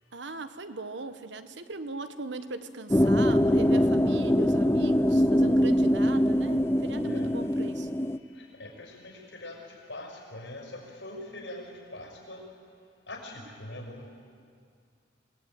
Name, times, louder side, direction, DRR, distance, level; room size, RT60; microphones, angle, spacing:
voice 1, 0.1-7.9, right 3 dB, 70° right, 10 dB, 1.3 m, -39 dB
sound 1, 2.9-8.2, equal, 15° left, 0.6 m, -23 dB
voice 2, 8.3-12.4 13.1-14.1, left 1 dB, 80° left, 2 dB, 6.1 m, -43 dB
26.5 x 19.5 x 9.2 m, 2.3 s
head